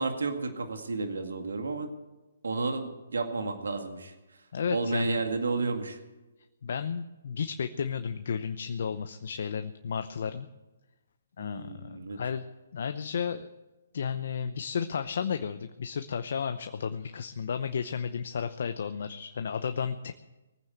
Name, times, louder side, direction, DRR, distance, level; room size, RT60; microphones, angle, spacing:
voice 1, 0.0-1.9 2.4-4.1 4.7-6.0 11.4-12.2, right 3 dB, 80° right, 5 dB, 2.1 m, -32 dB
voice 2, 4.5-5.2 6.6-10.5 11.4-12.4 12.7-13.5 13.9-20.1, left 6 dB, 60° left, 9 dB, 0.8 m, -33 dB
19.5 x 9.0 x 7.8 m, 1.1 s
hypercardioid pair, 145°, 0 cm